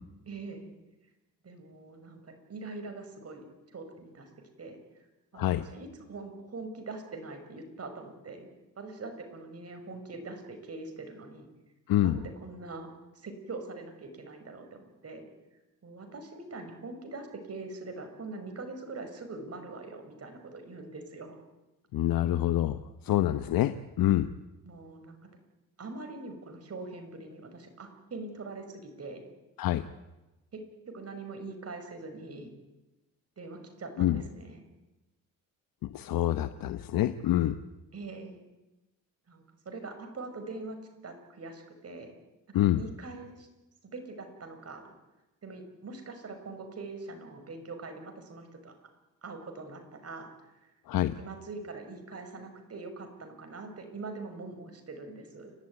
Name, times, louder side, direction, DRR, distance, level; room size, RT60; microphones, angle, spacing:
voice 1, 0.3-0.7 1.4-4.3 4.6-5.1 5.3-8.5 8.8-11.5 12.0-12.9 13.1-15.3 15.8-21.4 24.6-25.2 25.8-29.3 30.5-32.5 33.4-34.6 37.9-38.4 39.3-40.8 41.0-42.1 42.5-43.5 43.9-44.9 45.4-48.7 49.2-50.7 51.2-55.5, right 3 dB, 45° right, 6 dB, 6.0 m, -43 dB
voice 2, 11.9-12.2 21.9-22.8 23.0-24.3 29.6-29.8 34.0-34.2 35.9-37.6 42.5-42.8 50.9-51.1, left 13 dB, 80° left, 10 dB, 1.0 m, -26 dB
29.5 x 12.5 x 9.7 m, 1.0 s
cardioid pair, 80°, 34 cm